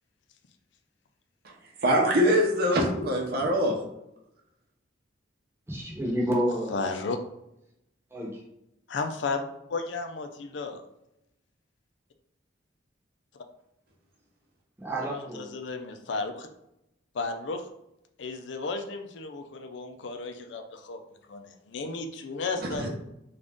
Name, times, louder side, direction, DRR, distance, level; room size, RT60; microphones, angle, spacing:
voice 1, 1.8-3.8 22.8-22.9, equal, 55° right, 0 dB, 0.8 m, -23 dB
voice 2, 5.7-6.7 8.1-8.4 14.8-15.5, equal, 15° right, -4 dB, 1.0 m, -29 dB
voice 3, 6.7-7.2 8.9-9.4 9.7-10.8 13.3-13.4 15.1-16.5 17.1-17.7 18.2-21.0 21.3-22.9, left 3 dB, 70° left, 6 dB, 0.4 m, -33 dB
3.8 x 2.4 x 3.5 m, 0.84 s
head